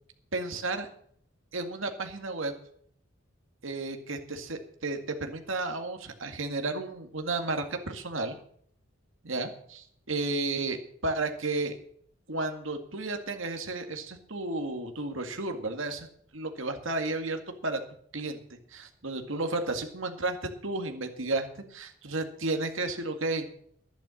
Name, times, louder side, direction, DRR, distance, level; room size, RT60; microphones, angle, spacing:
voice 1, 0.3-0.9 1.5-2.5 3.6-8.4 9.2-9.8 10.1-11.8 12.3-16.1 16.3-17.8 18.1-18.4 18.7-23.4, right 2 dB, 65° right, 5 dB, 2.0 m, -32 dB
12.0 x 10.5 x 6.4 m, 0.62 s
head